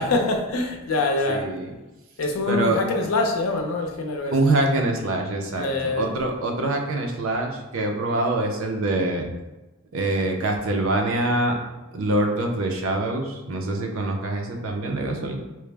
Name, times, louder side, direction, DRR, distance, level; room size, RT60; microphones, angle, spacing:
voice 1, 0.0-1.5 2.2-4.3 5.6-6.1, left 2 dB, 75° left, 2 dB, 0.5 m, -24 dB
voice 2, 1.3-1.7 2.5-2.8 4.3-9.3 9.9-11.6 11.9-15.3, right 2 dB, 70° right, 1 dB, 0.6 m, -24 dB
4.5 x 2.0 x 3.3 m, 1.1 s
head